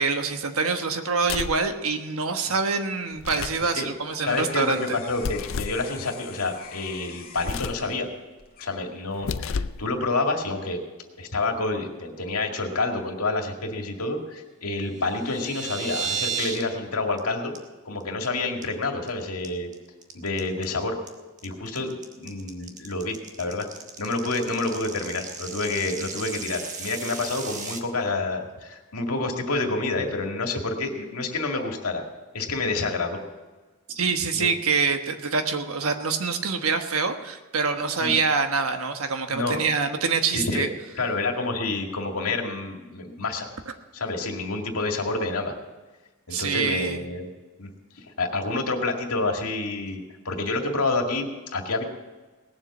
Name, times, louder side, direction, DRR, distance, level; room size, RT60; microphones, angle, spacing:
voice 1, 0.0-5.0 33.9-40.7 46.3-47.0, right 4 dB, 75° right, 6 dB, 1.3 m, -25 dB
sound 1, 1.2-1.7 3.1-3.7 5.2-5.8 7.4-7.9 9.1-9.9, left 5 dB, 65° left, 0.4 m, -31 dB
sound 2, 3.1-9.3 9.8-10.3, left 7 dB, 45° left, 1.6 m, -46 dB
voice 2, 4.2-8.1 8.6-10.8 11.2-17.6 17.8-19.7 20.1-21.0 21.4-23.7 24.0-32.0 32.3-33.2 34.3-34.5 38.0-38.2 39.3-39.6 40.3-40.7 41.0-43.5 43.9-45.5 46.3-47.3 47.6-47.7 48.0-51.8, left 3 dB, 90° left, 3 dB, 2.1 m, -28 dB
sound 3, 15.0-16.6 16.9-17.2 17.5-17.6 18.0-18.3 18.6-19.1 19.4-27.8, right 6 dB, 35° right, 1.3 m, -34 dB
18.5 x 7.4 x 7.2 m, 1.2 s
head